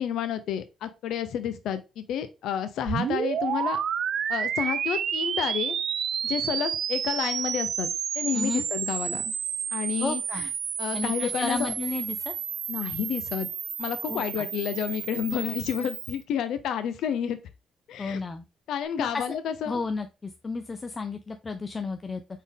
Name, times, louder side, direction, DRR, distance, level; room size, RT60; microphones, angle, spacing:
voice 1, 0.0-3.8 4.3-5.8 6.2-9.3 9.7-10.5 10.8-11.7 12.7-13.5 13.8-17.4 17.9-18.2 18.7-19.8, left 9 dB, 80° left, 10 dB, 0.5 m, -30 dB
sound 1, 2.9-16.2, right 8 dB, 60° right, 0.4 m, -30 dB
voice 2, 8.3-8.6 10.0-10.4 10.9-12.3 14.1-14.5 18.0-18.4 19.0-19.2 19.7-22.2, left 4 dB, 30° left, 8 dB, 0.4 m, -32 dB
4.2 x 3.6 x 3.5 m, 0.28 s
cardioid pair, 90°, 0 cm